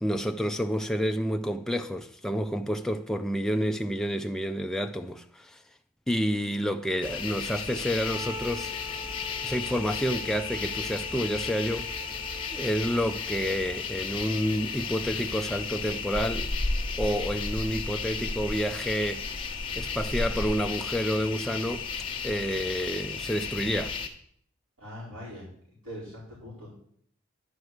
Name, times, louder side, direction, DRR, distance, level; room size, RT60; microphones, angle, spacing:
voice 1, 0.0-5.6 6.1-8.7 9.4-11.9 12.5-16.5 17.0-19.4 19.8-21.9 22.2-24.0, equal, ahead, 0.3 m, -29 dB
sound 1, 7.0-24.1, left 4 dB, 25° left, 1.0 m, -34 dB
Wind instrument woodwind instrument, 8.1-13.7, left 1 dB, 40° right, 5.7 m, -45 dB
voice 2, 24.8-25.5 25.8-26.7, equal, 80° right, 4.6 m, -41 dB
10.5 x 4.8 x 7.9 m
head